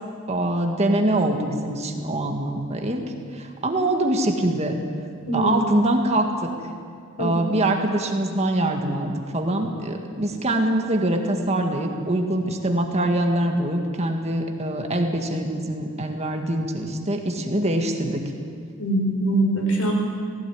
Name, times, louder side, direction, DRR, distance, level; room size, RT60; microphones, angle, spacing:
voice 1, 0.3-3.0 3.3-4.8 5.3-6.5 7.2-18.2, right 1 dB, 30° right, 3 dB, 1.8 m, -24 dB
voice 2, 5.2-5.6 7.2-7.3 18.8-19.9, right 1 dB, 80° left, 0 dB, 5.1 m, -22 dB
17.5 x 16.0 x 9.6 m, 2.2 s
head